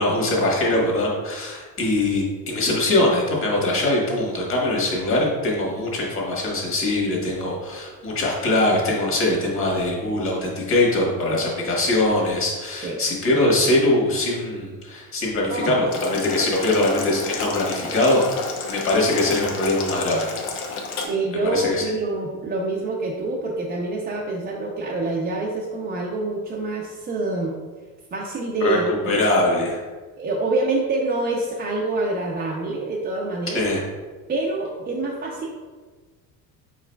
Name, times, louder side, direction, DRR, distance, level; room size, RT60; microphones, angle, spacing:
voice 1, 0.0-20.3 21.4-21.8 28.6-29.8 33.5-33.8, left 2 dB, 35° left, -3 dB, 1.5 m, -22 dB
Boiling, 15.9-21.0, left 4 dB, 85° left, 0.9 m, -31 dB
voice 2, 21.0-27.6 28.1-29.3 30.2-33.7 34.3-35.5, right 2 dB, 30° right, -3 dB, 0.6 m, -26 dB
4.8 x 4.7 x 2.3 m, 1.4 s
cardioid pair, 110°, 36 cm